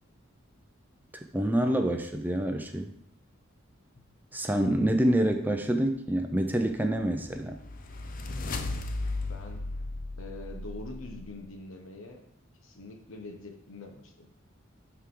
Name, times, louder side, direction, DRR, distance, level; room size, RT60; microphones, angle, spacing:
voice 1, 1.3-2.9 4.3-7.6, right 1 dB, 10° right, 5 dB, 0.6 m, -27 dB
sound 1, 7.2-11.2, left 2 dB, 40° left, 0.7 m, -35 dB
voice 2, 9.3-9.6 10.2-12.2 12.6-14.3, left 2 dB, 75° left, 4 dB, 1.3 m, -44 dB
12.5 x 4.6 x 3.9 m, 0.72 s
head